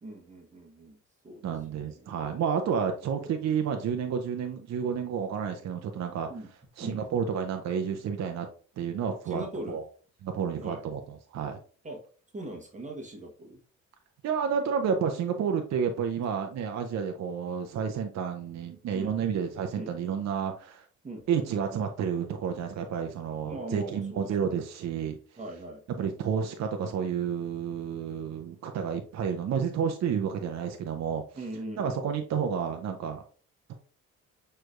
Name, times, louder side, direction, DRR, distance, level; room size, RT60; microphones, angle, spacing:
voice 1, 0.0-1.0 1.2-1.4 1.7-2.2 6.3-6.5 6.8-7.0 9.2-9.8 10.6-10.8 11.8-12.0 12.3-13.6 18.9-19.1 19.7-19.9 21.0-21.2 23.4-24.3 25.4-25.8 31.3-32.0, right 1 dB, 25° right, 0 dB, 1.1 m, -40 dB
voice 2, 1.4-6.3 6.8-8.5 8.8-9.8 10.2-11.6 14.2-20.8 21.3-25.2 26.0-31.2 31.8-33.2, right 7 dB, 60° right, 5 dB, 0.6 m, -30 dB
6.2 x 3.2 x 2.5 m, 0.41 s
cardioid pair, 90°, 30 cm